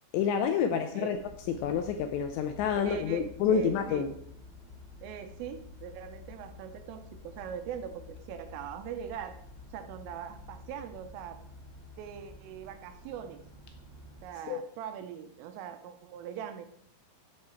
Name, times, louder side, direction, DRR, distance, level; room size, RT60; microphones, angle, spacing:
voice 1, 0.1-1.2 1.5-4.1 14.5-14.6, left 7 dB, 80° left, 2.6 m, -28 dB
voice 2, 0.7-1.1 2.8-4.0 5.0-9.3 9.7-11.4 12.0-13.4 14.2-16.7, right 9 dB, 85° right, 3.4 m, -41 dB
sound 1, 1.1-14.3, left 3 dB, 5° right, 4.8 m, -50 dB
14.5 x 7.3 x 4.5 m
omnidirectional pair, 5.8 m